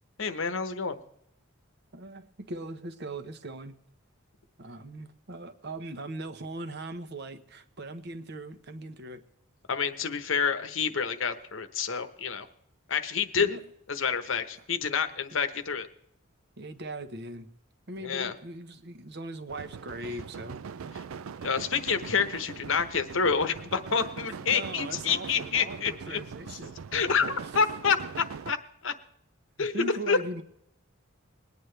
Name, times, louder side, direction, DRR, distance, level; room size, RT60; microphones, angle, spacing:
voice 1, 0.2-1.0 9.7-12.5 12.9-13.6 13.9-15.9 18.0-18.3 21.4-26.2 26.9-28.6 28.8-28.9 29.6-30.2, left 6 dB, 65° left, 10 dB, 1.0 m, -28 dB
voice 2, 1.9-3.8 4.6-9.2 13.4-13.6 16.6-17.5 17.9-21.0 24.5-27.4 29.6-30.4, right 2 dB, 55° right, 9 dB, 1.0 m, -40 dB
sound 1, 19.5-28.5, right 6 dB, 80° right, 0.4 m, -41 dB
21.5 x 9.5 x 3.3 m, 0.78 s
head